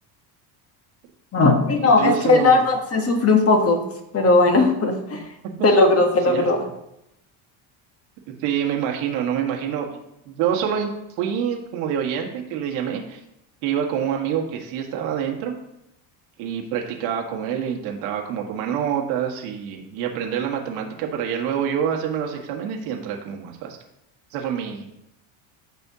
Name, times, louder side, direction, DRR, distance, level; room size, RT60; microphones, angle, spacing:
voice 1, 1.3-3.8 4.1-5.2 5.6-6.6, left 3 dB, 30° left, 4 dB, 1.3 m, -17 dB
voice 2, 1.8-2.6 5.9-6.7 8.4-9.9 10.3-10.9 11.2-13.2 13.6-15.5 16.4-23.8 24.3-24.9, right 8 dB, 85° right, 1 dB, 1.9 m, -26 dB
14.0 x 5.6 x 2.9 m, 0.83 s
cardioid pair, 135°, 49 cm